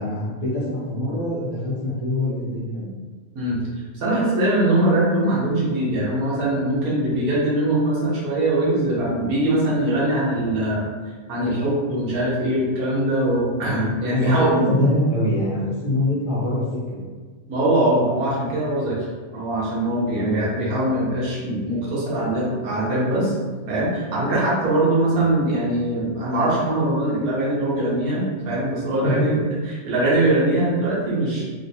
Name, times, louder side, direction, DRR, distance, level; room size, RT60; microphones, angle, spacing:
voice 1, 0.0-2.9 14.0-17.0 20.1-20.4 25.0-25.2 29.0-29.3, left 1 dB, 40° left, -9 dB, 0.9 m, -24 dB
voice 2, 3.3-10.9 11.3-14.5 17.5-19.1 19.3-23.4 23.7-29.4 29.8-31.4, right 1 dB, 85° right, -6 dB, 1.4 m, -22 dB
3.5 x 2.5 x 2.7 m, 1.4 s
omnidirectional pair, 1.5 m